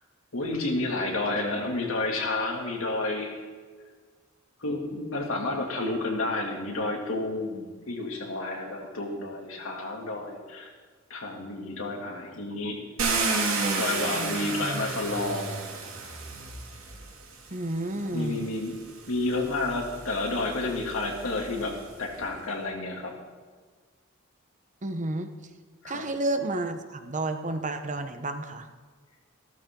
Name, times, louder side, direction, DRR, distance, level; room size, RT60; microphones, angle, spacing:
voice 1, 0.3-3.4 4.6-10.7 11.1-12.8 13.8-15.6 18.1-18.8 19.1-23.1 25.8-26.0, left 2 dB, 80° left, 0 dB, 2.7 m, -30 dB
Car, 13.0-17.1 18.0-18.1 18.7-22.0, right 3 dB, 85° right, 2.5 m, -31 dB
voice 2, 17.5-18.5 24.8-25.3 25.8-28.7, right 2 dB, 35° right, 8 dB, 1.0 m, -31 dB
15.0 x 13.5 x 3.8 m, 1.5 s
head